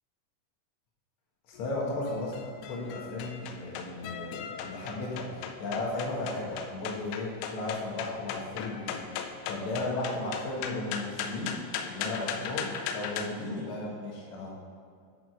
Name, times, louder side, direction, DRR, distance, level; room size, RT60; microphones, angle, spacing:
voice 1, 1.5-2.3 2.7-11.6 11.8-14.5, left 2 dB, 65° left, -2 dB, 1.7 m, -35 dB
sound 1, 1.6-13.3, left 7 dB, 85° left, 3.0 m, -39 dB
10.0 x 6.7 x 4.9 m, 2.3 s
omnidirectional pair, 5.6 m